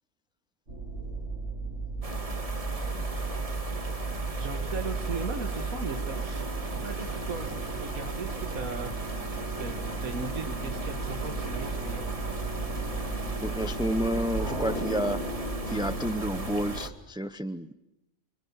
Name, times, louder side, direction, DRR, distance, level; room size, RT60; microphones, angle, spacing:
sound 1, 0.7-16.8, right 3 dB, 55° right, 8.4 m, -34 dB
sound 2, 2.0-16.9, right 2 dB, 25° right, 1.9 m, -39 dB
voice 1, 4.4-6.5 6.7-8.9 9.6-12.1, right 4 dB, 75° right, 3 dB, 2.2 m, -38 dB
voice 2, 13.4-15.2 15.7-17.7, equal, 5° right, 11 dB, 0.6 m, -30 dB
29.5 x 25.5 x 7.2 m, 0.91 s
omnidirectional pair, 1.5 m